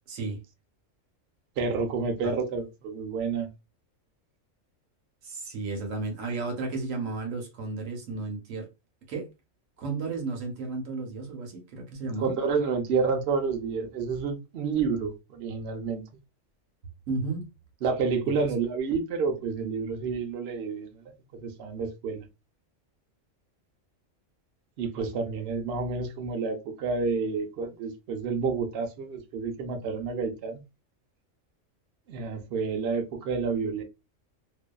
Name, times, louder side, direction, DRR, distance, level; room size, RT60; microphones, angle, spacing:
voice 1, 0.1-0.4 2.2-2.3 5.2-8.7 9.1-9.3 9.8-12.3 17.1-17.5, right 3 dB, 90° right, 1.2 m, -33 dB
voice 2, 1.6-3.5 12.2-16.0 17.8-22.2 24.8-30.6 32.1-33.8, right 5 dB, 60° right, 0.8 m, -29 dB
2.6 x 2.3 x 2.2 m
omnidirectional pair, 1.3 m